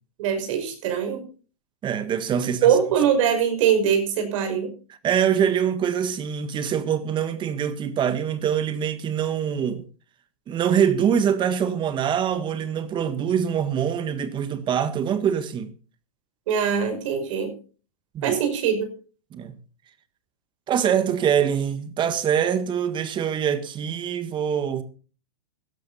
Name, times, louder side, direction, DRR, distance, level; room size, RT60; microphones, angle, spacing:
voice 1, 0.2-1.2 2.4-4.7 16.5-17.5 18.2-18.9, right 8 dB, 60° right, 5.9 m, -22 dB
voice 2, 1.8-2.7 5.0-9.8 10.5-15.7 18.1-18.4 19.3-19.5 20.7-24.8, right 8 dB, 25° right, 1.6 m, -24 dB
16.0 x 12.5 x 4.2 m
hypercardioid pair, 125°, 19 cm